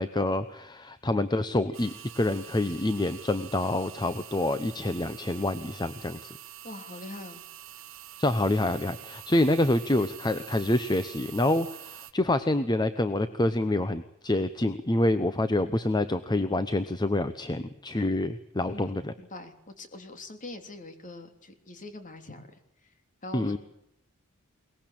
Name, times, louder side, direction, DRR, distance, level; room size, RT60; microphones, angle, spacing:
voice 1, 0.0-6.3 8.2-19.1 23.3-23.6, left 1 dB, 20° left, 11 dB, 0.9 m, -27 dB
sound 1, 1.7-12.1, right 12 dB, 65° right, 2.0 m, -46 dB
voice 2, 6.6-7.4 18.6-22.9 23.2-23.6, left 2 dB, 40° left, 7 dB, 3.4 m, -43 dB
22.5 x 20.0 x 8.8 m, 0.80 s
head